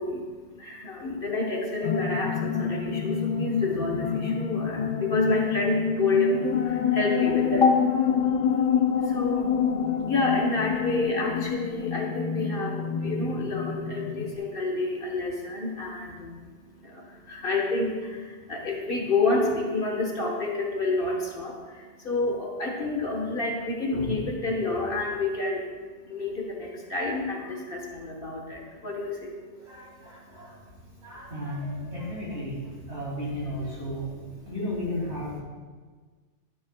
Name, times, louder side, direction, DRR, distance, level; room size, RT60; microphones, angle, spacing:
voice 1, 0.0-8.2 8.5-25.7 26.0-32.0 32.3-32.8 33.1-34.3 34.9-35.4, left 3 dB, 50° left, 0 dB, 1.2 m, -29 dB
sound 1, 1.8-14.3, left 7 dB, 70° left, 0.4 m, -27 dB
voice 2, 29.6-30.5 31.0-32.6 32.9-34.1 34.5-35.4, left 1 dB, 60° right, -5 dB, 2.9 m, -34 dB
11.5 x 9.9 x 2.2 m, 1.4 s
omnidirectional pair, 1.2 m